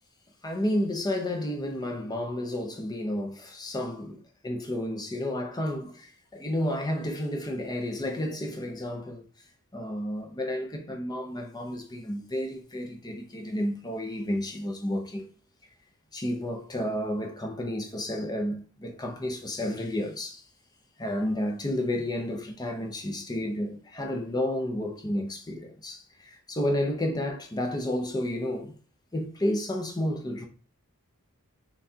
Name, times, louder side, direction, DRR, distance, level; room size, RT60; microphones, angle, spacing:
voice 1, 0.4-9.2 9.7-15.3 16.1-20.4 21.0-28.7 29.1-30.5, left 1 dB, 20° left, 0.5 m, -31 dB
5.6 x 2.3 x 2.7 m
head